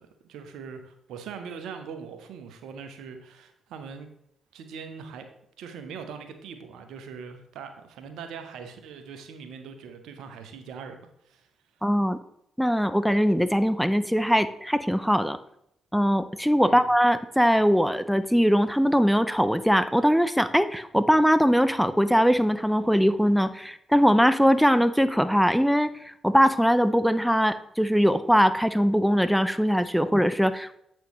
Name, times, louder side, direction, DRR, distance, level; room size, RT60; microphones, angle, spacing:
voice 1, 0.2-4.1 4.5-5.3 5.6-11.0 11.2-11.5 16.6-16.9, right 6 dB, 75° right, 7 dB, 0.9 m, -41 dB
voice 2, 11.8-12.2 12.6-15.4 15.9-25.9 26.2-30.8, equal, ahead, 12 dB, 0.5 m, -21 dB
8.3 x 6.1 x 3.1 m, 0.78 s
hypercardioid pair, 45°, 0 cm